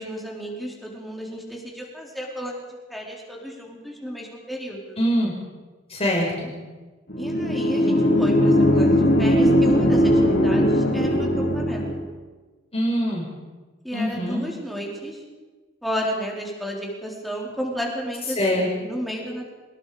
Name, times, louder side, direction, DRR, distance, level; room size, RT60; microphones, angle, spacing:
voice 1, 0.0-5.0 7.2-12.1 13.8-15.2 15.8-19.5, equal, ahead, -2 dB, 4.6 m, -32 dB
voice 2, 5.0-5.3 5.9-6.5 12.7-13.2 13.9-14.4 18.4-18.7, equal, 35° left, -2 dB, 5.2 m, -23 dB
sound 1, 7.1-12.0, equal, 65° left, 5.2 m, -19 dB
25.0 x 20.5 x 5.3 m, 1.3 s
head